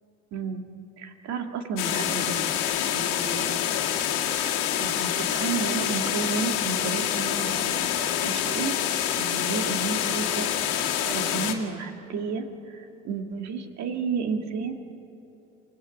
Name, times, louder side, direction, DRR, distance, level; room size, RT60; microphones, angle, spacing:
voice 1, 0.3-0.6 1.0-2.4 2.9-3.7 4.8-8.8 9.2-10.5 11.0-14.7, right 5 dB, 60° right, 5 dB, 2.3 m, -32 dB
sound 1, 1.8-11.5, left 10 dB, 75° left, 2.1 m, -27 dB
27.5 x 18.5 x 8.6 m, 2.9 s
hypercardioid pair, 70°, 31 cm